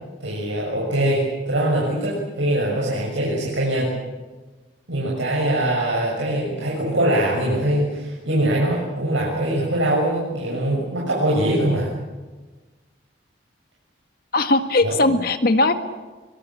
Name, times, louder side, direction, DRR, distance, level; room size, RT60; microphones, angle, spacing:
voice 1, 0.2-3.9 4.9-11.9 14.8-15.1, right 1 dB, 85° right, -4 dB, 6.9 m, -22 dB
voice 2, 14.3-15.7, left 2 dB, 50° left, 8 dB, 1.8 m, -18 dB
24.0 x 23.5 x 8.7 m, 1.3 s
head